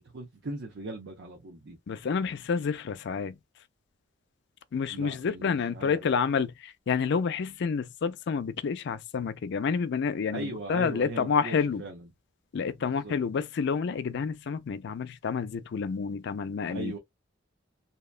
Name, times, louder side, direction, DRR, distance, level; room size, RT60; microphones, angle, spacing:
voice 1, 0.0-1.8 4.9-6.1 10.3-12.1 12.8-13.1 16.7-17.0, right 2 dB, 60° right, 0.7 m, -39 dB
voice 2, 1.9-3.4 4.7-11.8 12.5-17.0, left 6 dB, 60° left, 0.4 m, -29 dB
2.8 x 2.2 x 2.4 m
head